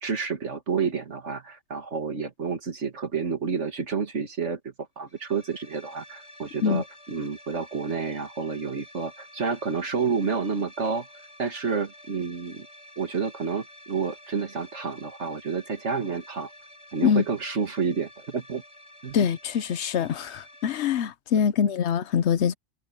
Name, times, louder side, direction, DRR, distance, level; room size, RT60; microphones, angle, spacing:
voice 1, 0.0-11.1 11.4-12.7 13.0-16.5 16.9-18.6 19.0-19.2, right 5 dB, 60° right, 2.1 m, -29 dB
sound 1, 5.1-20.8, equal, 20° left, 8.2 m, -50 dB
voice 2, 19.1-22.5, left 7 dB, 65° left, 1.0 m, -24 dB
omnidirectional pair, 1.3 m